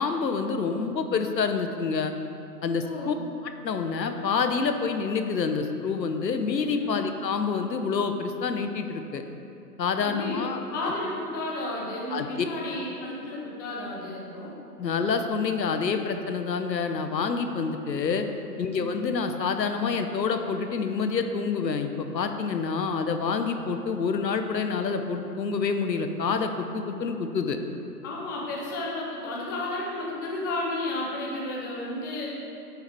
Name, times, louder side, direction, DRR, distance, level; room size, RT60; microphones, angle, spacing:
voice 1, 0.0-2.1 2.6-3.1 3.4-9.2 9.8-10.9 12.1-12.5 14.8-18.3 18.6-27.6, left 5 dB, 85° left, 7 dB, 0.9 m, -27 dB
voice 2, 2.8-3.2 6.8-7.0 10.0-14.5 18.7-18.9 28.0-32.3, left 2 dB, 15° left, -4 dB, 0.5 m, -32 dB
10.0 x 7.0 x 3.4 m, 2.7 s
hypercardioid pair, 135°, 49 cm